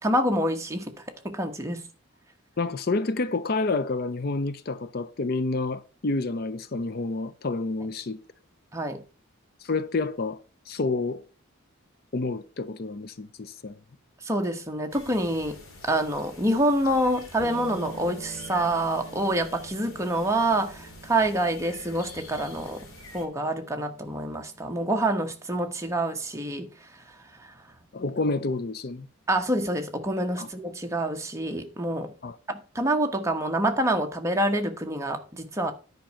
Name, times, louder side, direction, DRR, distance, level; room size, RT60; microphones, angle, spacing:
voice 1, 0.0-0.9 1.2-1.8 8.7-9.0 14.2-15.6 15.8-22.8 23.1-26.7 27.4-27.5 29.3-32.1 32.5-35.7, right 1 dB, 15° right, 1.0 m, -27 dB
voice 2, 2.6-8.2 9.6-10.4 10.7-11.2 12.1-13.8 27.9-29.1 30.4-30.5 32.2-32.4, left 3 dB, 45° left, 0.5 m, -29 dB
sound 1, 14.9-23.2, left 2 dB, 80° left, 2.7 m, -47 dB
sound 2, 17.4-26.2, right 3 dB, 15° left, 3.8 m, -46 dB
10.5 x 5.2 x 5.8 m
head